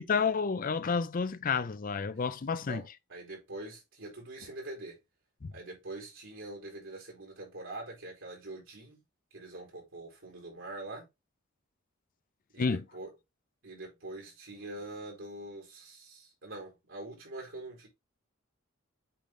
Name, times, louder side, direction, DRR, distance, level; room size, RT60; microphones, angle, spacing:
voice 1, 0.0-2.8 5.4-5.5 12.6-12.8, left 5 dB, 45° left, 0.5 m, -30 dB
voice 2, 2.7-5.0 5.5-9.0 9.3-11.1 12.5-13.1 13.6-17.9, right 2 dB, 70° right, 4.3 m, -44 dB
8.3 x 3.7 x 3.7 m
head